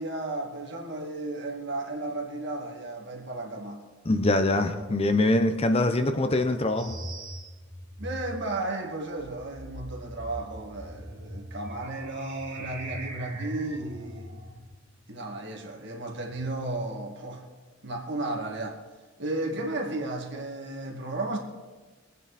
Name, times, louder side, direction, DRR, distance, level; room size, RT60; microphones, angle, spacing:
voice 1, 0.0-3.8 8.0-14.3 15.1-17.4 17.8-18.8 19.2-21.4, right 2 dB, 60° right, 1 dB, 2.2 m, -34 dB
voice 2, 4.0-7.0, left 2 dB, 30° left, 9 dB, 0.8 m, -24 dB
sound 1, 6.8-14.6, right 1 dB, 45° right, 2.8 m, -41 dB
22.0 x 9.2 x 4.2 m, 1.3 s
head